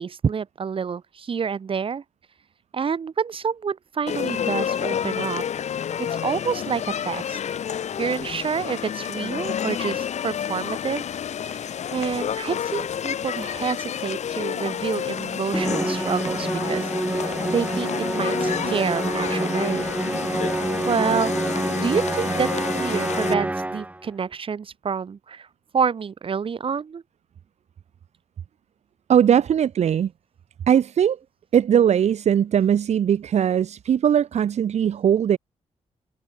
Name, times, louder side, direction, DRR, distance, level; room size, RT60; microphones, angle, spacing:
voice 1, 0.0-2.0 2.7-5.4 6.0-7.4 8.0-11.1 11.5-19.9 20.9-21.3 21.8-25.5 25.7-27.0, right 6 dB, 50° right, 2.1 m, -28 dB
sound 1, 4.1-23.3, left 9 dB, 75° left, 3.2 m, -30 dB
Musical instrument, 15.5-24.0, right 2 dB, 10° right, 1.2 m, -27 dB
voice 2, 29.1-30.1 30.7-31.2 31.5-35.4, right 9 dB, 70° right, 1.3 m, -19 dB
cardioid pair, 105°, 12 cm